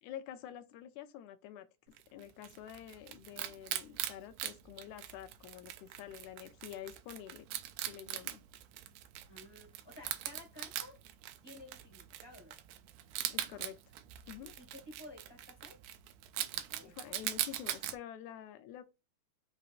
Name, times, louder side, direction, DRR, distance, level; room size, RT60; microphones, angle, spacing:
voice 1, 0.0-1.7 2.1-7.5 7.8-8.4 13.3-13.8 14.3-14.5 16.8-18.8, left 10 dB, 85° left, 2.1 m, -48 dB
Wild animals, 2.0-18.0, right 13 dB, 90° right, 2.0 m, -42 dB
voice 2, 9.3-11.0 11.4-12.5 14.4-15.8 16.5-17.1, left 1 dB, 15° left, 1.0 m, -53 dB
5.8 x 3.0 x 2.5 m
omnidirectional pair, 3.4 m